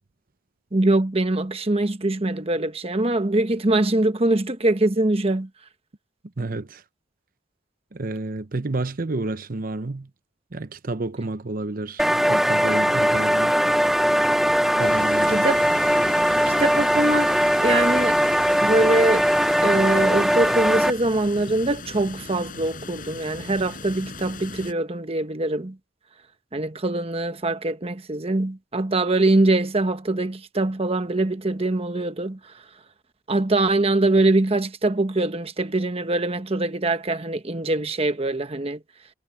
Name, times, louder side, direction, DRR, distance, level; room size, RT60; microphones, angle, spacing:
voice 1, 0.7-5.5 15.3-15.6 16.5-17.3 17.6-18.2 18.6-19.3 19.6-25.8 26.5-32.4 33.3-38.8, right 2 dB, 30° right, 1.1 m, -23 dB
voice 2, 6.4-6.8 7.9-10.1 10.5-13.6 14.8-15.5, right 2 dB, 45° right, 0.8 m, -30 dB
sound 1, 12.0-20.9, equal, ahead, 0.9 m, -20 dB
sound 2, 14.8-24.7, left 3 dB, 45° left, 5.9 m, -39 dB
head